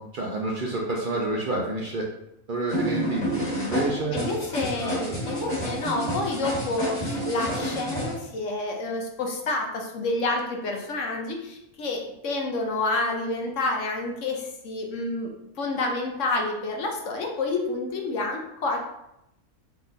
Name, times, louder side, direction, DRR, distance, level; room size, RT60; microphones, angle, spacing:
voice 1, 0.0-2.1 2.5-4.2 4.8-5.6, right 2 dB, 55° right, -1 dB, 0.6 m, -29 dB
sound 1, 2.7-8.1, equal, 35° left, 1.9 m, -29 dB
voice 2, 4.1-18.8, left 2 dB, 65° left, 2 dB, 1.1 m, -29 dB
4.2 x 3.2 x 3.9 m, 0.84 s
omnidirectional pair, 1.4 m